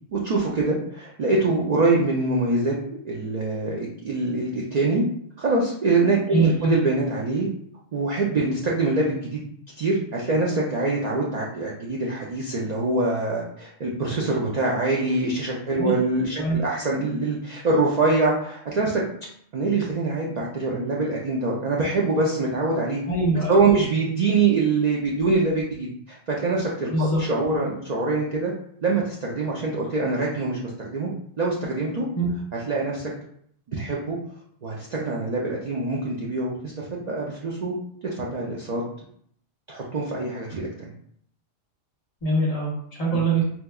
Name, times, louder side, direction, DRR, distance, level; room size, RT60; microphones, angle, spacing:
voice 1, 0.1-2.7 3.0-5.0 5.4-7.5 7.9-9.4 9.8-19.0 19.5-23.0 23.5-28.5 28.8-31.1 31.4-32.1 32.7-33.1 33.7-34.2 34.6-37.7 38.1-38.8 39.7-40.9 43.1-43.2, right 3 dB, 65° right, -3 dB, 0.4 m, -24 dB
voice 2, 6.3-6.7 15.7-15.9 16.3-16.6 23.1-23.5 26.9-27.2 32.1-32.3 42.2-43.4, right 2 dB, 35° left, -5 dB, 0.9 m, -23 dB
4.3 x 2.2 x 2.2 m, 0.67 s
omnidirectional pair, 1.3 m